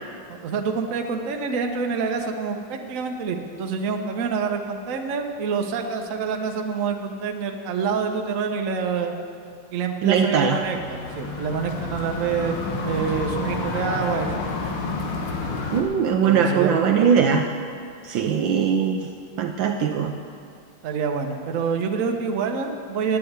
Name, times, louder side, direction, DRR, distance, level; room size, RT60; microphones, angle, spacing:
voice 1, 0.3-9.1 9.7-12.6 12.8-14.3 16.2-17.3 19.8-19.9 20.8-23.2, right 5 dB, 50° right, 4 dB, 1.0 m, -27 dB
voice 2, 10.0-10.6 15.7-17.5 18.0-19.1 19.4-20.1, right 7 dB, 75° right, 5 dB, 1.2 m, -20 dB
sound 1, 10.4-15.8, left 3 dB, 80° left, 2.2 m, -30 dB
9.9 x 9.3 x 8.0 m, 2.3 s
omnidirectional pair, 2.4 m